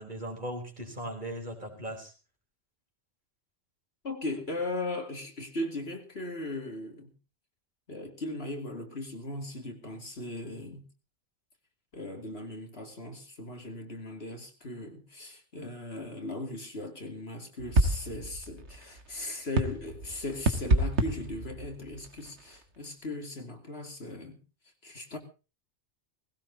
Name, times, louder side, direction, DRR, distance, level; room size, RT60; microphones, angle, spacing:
voice 1, 0.0-2.1, right 1 dB, 40° right, 4.2 m, -38 dB
voice 2, 4.0-7.1 7.9-10.9 11.9-24.4 24.8-25.2, left 2 dB, 55° left, 2.9 m, -38 dB
sound 1, 17.6-22.6, right 2 dB, 65° right, 1.9 m, -29 dB
19.5 x 17.0 x 2.8 m
omnidirectional pair, 1.2 m